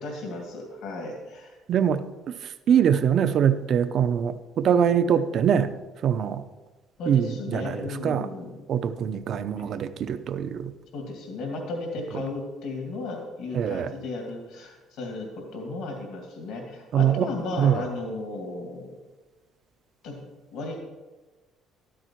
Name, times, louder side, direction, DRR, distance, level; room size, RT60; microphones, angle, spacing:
voice 1, 0.0-1.6 7.0-8.6 9.6-9.8 10.9-19.0 20.0-20.2 20.5-20.8, left 2 dB, 60° left, 1 dB, 2.4 m, -35 dB
voice 2, 1.7-2.3 2.7-5.7 6.0-6.4 7.1-8.3 8.7-10.7 13.5-13.9 16.9-17.3 17.6-17.8, right 8 dB, 40° right, 10 dB, 0.7 m, -23 dB
13.5 x 13.0 x 4.6 m, 1.2 s
cardioid pair, 175°, 0 cm